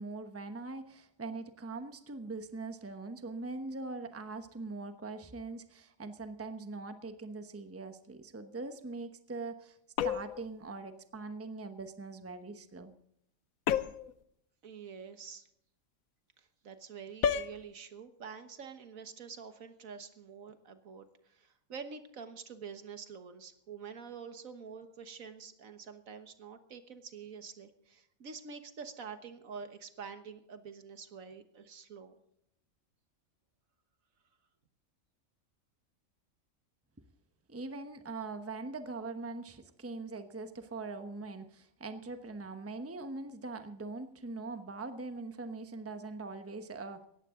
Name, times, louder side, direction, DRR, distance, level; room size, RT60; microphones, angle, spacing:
voice 1, 0.0-9.8 10.0-12.9 37.5-47.1, right 3 dB, 10° right, 9 dB, 0.9 m, -42 dB
sound 1, 10.0-10.5 13.7-14.1 17.2-17.6, left 8 dB, 90° left, 1.2 m, -30 dB
voice 2, 14.6-15.4 16.6-21.0 21.3-32.2, right 6 dB, 75° right, 9 dB, 1.7 m, -47 dB
18.0 x 14.5 x 3.7 m, 0.75 s
omnidirectional pair, 1.4 m